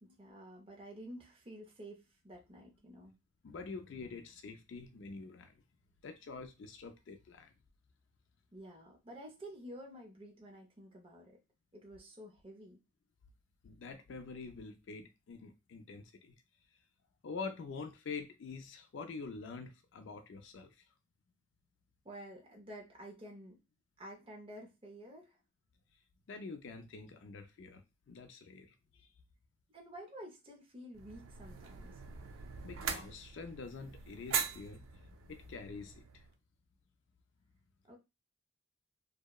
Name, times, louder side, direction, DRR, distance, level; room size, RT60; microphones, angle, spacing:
voice 1, 0.0-3.1 8.5-11.4 11.7-12.8 22.0-23.6 24.0-25.4 29.7-32.0 37.8-38.0, right 1 dB, 25° right, 0.5 m, -51 dB
voice 2, 3.4-5.6 6.0-7.5 13.6-16.4 17.2-20.8 26.3-29.1 32.6-36.2, left 4 dB, 65° left, 0.4 m, -46 dB
sound 1, 30.9-36.3, right 7 dB, 85° right, 0.4 m, -42 dB
2.7 x 2.0 x 2.2 m
head